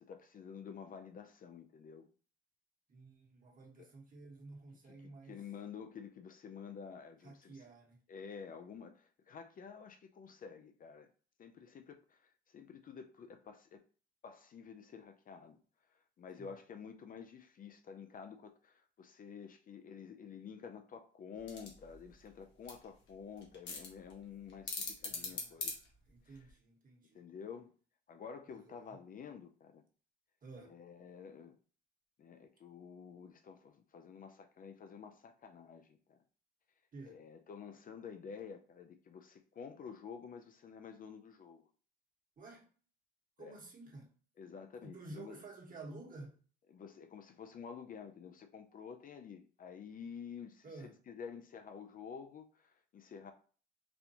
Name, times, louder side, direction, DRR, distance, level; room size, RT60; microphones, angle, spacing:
voice 1, 0.0-2.1 5.3-7.6 8.1-11.1 11.4-13.8 14.2-15.6 16.2-25.8 26.3-26.4 27.1-27.7 28.1-29.8 30.7-31.6 32.2-36.2 37.1-41.7 43.4-43.6 44.4-45.4 46.7-53.3, left 6 dB, 45° left, 0.4 m, -50 dB
voice 2, 2.9-5.4 7.2-8.0 16.4-16.6 25.0-27.2 28.5-29.0 30.4-30.8 36.9-37.2 42.4-42.7 43.4-44.1 44.8-46.4 50.6-51.0, right 3 dB, 45° right, 1.2 m, -52 dB
sound 1, 21.4-26.5, left 4 dB, 65° left, 1.1 m, -44 dB
4.2 x 2.2 x 2.8 m
cardioid pair, 90°, 20 cm